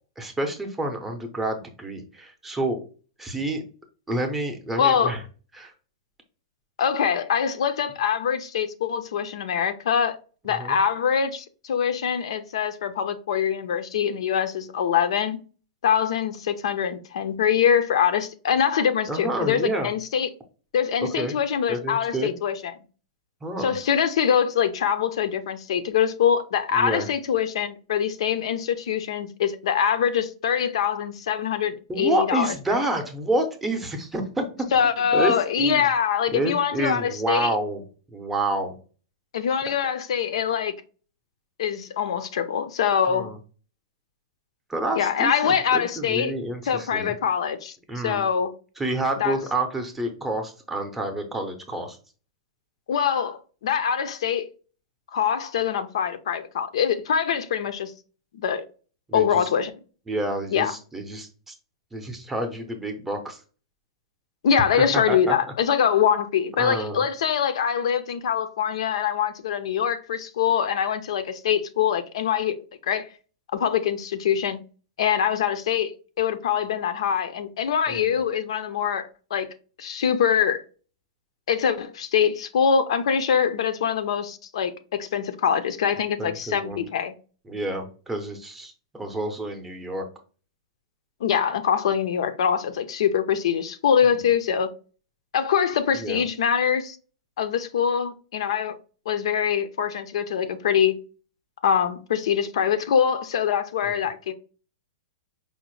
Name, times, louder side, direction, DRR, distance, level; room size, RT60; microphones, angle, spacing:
voice 1, 0.2-2.8 3.2-3.6 4.1-5.2 5.5-5.7 10.5-10.8 19.1-19.9 21.0-21.4 21.7-22.3 23.4-23.8 26.7-27.1 31.9-35.9 36.3-37.8 38.1-38.8 43.1-43.4 44.7-47.1 47.9-48.3 48.8-52.0 59.1-59.5 60.1-61.5 61.9-63.4 64.6-65.4 66.6-67.0 77.9-78.2 86.2-86.9 87.4-90.1 94.1-94.2 96.0-96.2 103.8-104.0, right 1 dB, 5° right, 0.6 m, -29 dB
voice 2, 4.8-5.1 6.8-10.2 10.4-15.4 15.8-20.3 20.7-22.6 23.6-32.5 34.7-37.5 39.3-40.7 41.6-43.3 45.0-46.3 46.7-47.8 48.0-48.5 49.2-49.4 52.9-54.5 55.1-57.9 58.3-58.7 59.1-59.7 60.5-60.7 64.4-73.1 73.5-74.6 75.0-75.9 76.2-79.5 79.8-80.6 81.5-87.1 91.2-94.7 95.3-97.0 97.4-98.8 99.1-101.0 101.6-104.3, left 8 dB, 70° left, 0.5 m, -24 dB
5.0 x 2.0 x 3.0 m
hypercardioid pair, 160°, 3 cm